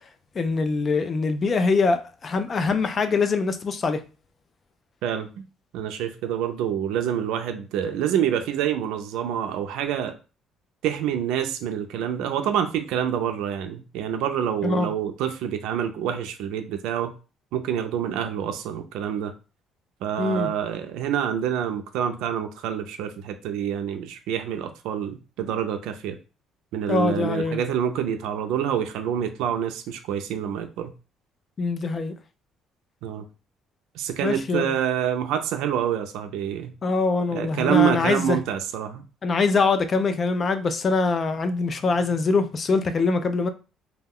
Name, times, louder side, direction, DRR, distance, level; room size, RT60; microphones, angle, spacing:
voice 1, 0.4-4.0 14.6-14.9 20.2-20.5 26.9-27.6 31.6-32.1 34.2-34.7 36.8-38.4 39.2-43.5, left 4 dB, 30° left, 0.3 m, -23 dB
voice 2, 5.0-5.4 5.7-10.2 10.8-17.1 17.5-19.3 20.0-26.2 26.7-30.9 33.0-33.2 33.9-36.7 37.3-39.0, right 9 dB, 85° right, 0.4 m, -27 dB
2.2 x 2.2 x 3.5 m
cardioid pair, 150°, 0 cm